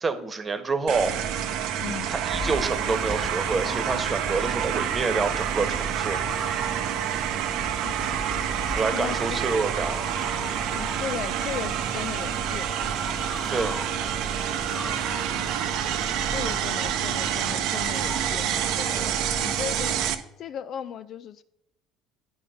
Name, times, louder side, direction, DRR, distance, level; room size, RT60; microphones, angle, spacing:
voice 1, 0.0-1.2 2.1-6.2 8.7-10.0 13.5-13.8, right 4 dB, 30° right, 1.1 m, -27 dB
sound 1, 0.9-20.1, right 9 dB, 65° right, 0.7 m, -28 dB
sound 2, 2.3-20.1, left 1 dB, 5° left, 1.1 m, -39 dB
voice 2, 8.9-9.4 10.7-12.7 14.8-15.0 16.3-20.1 20.4-21.4, left 9 dB, 55° left, 0.3 m, -37 dB
9.3 x 4.1 x 5.6 m
hypercardioid pair, 70°, 0 cm